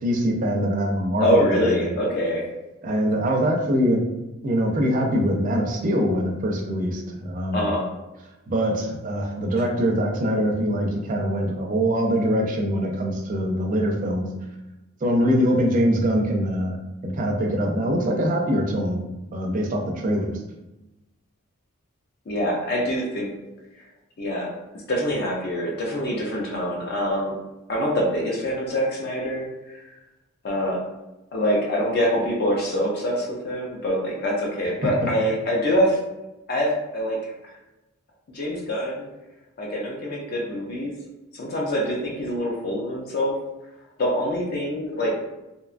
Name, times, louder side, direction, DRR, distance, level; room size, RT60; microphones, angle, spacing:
voice 1, 0.0-2.0 2.8-4.0 4.4-7.7 8.5-14.3 15.0-16.8 17.0-19.1 19.3-20.4 34.6-34.9, equal, 35° right, 1 dB, 0.4 m, -23 dB
voice 2, 1.2-2.4 7.5-7.8 15.2-15.5 22.3-23.3 24.2-24.5 24.9-27.4 27.7-29.9 30.4-30.8 31.3-36.0 36.5-37.3 38.3-39.1 39.6-40.9 41.3-43.4 44.0-45.1, equal, 45° left, -2 dB, 0.4 m, -25 dB
2.7 x 2.2 x 2.4 m, 1.0 s
head